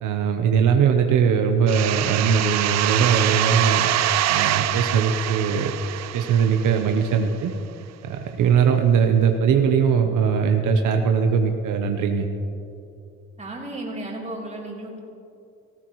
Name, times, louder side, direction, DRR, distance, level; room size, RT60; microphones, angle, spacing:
voice 1, 0.0-3.9 4.3-5.7 6.1-7.5 8.0-12.2, right 6 dB, 80° right, 5 dB, 0.9 m, -20 dB
Sweep - Slight Effected C, 1.7-7.2, right 13 dB, 60° right, 0.4 m, -24 dB
voice 2, 13.4-15.0, right 1 dB, 25° right, -3 dB, 3.4 m, -34 dB
18.0 x 14.5 x 3.1 m, 2.7 s
cardioid pair, 90°, 30 cm